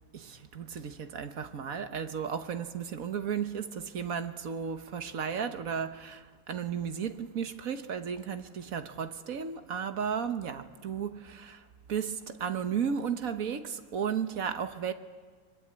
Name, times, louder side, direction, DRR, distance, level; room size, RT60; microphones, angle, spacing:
voice 1, 0.1-14.9, right 7 dB, 50° right, 1.4 m, -34 dB
24.0 x 22.5 x 9.6 m
omnidirectional pair, 2.1 m